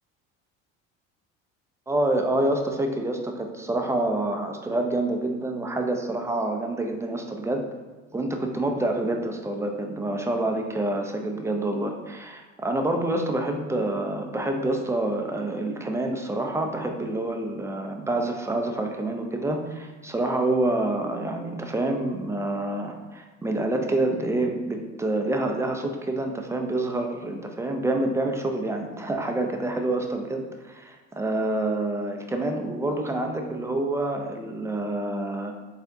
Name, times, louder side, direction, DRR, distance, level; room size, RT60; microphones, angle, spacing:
voice 1, 1.9-7.6 8.1-35.5, right 2 dB, 5° right, 3 dB, 0.5 m, -27 dB
4.5 x 3.4 x 2.7 m, 1.3 s
hypercardioid pair, 70°, 38 cm